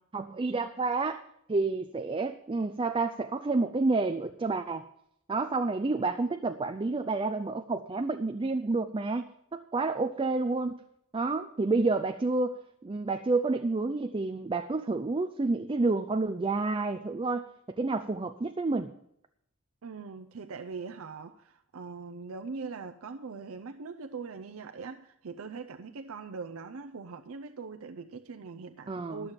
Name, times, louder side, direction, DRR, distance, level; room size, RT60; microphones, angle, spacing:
voice 1, 0.1-1.2 1.5-4.9 5.3-10.8 11.1-17.5 17.8-18.9 28.9-29.3, right 3 dB, 25° right, 0.5 m, -29 dB
voice 2, 19.8-29.3, right 4 dB, 70° right, 0.6 m, -41 dB
12.0 x 6.9 x 7.2 m
head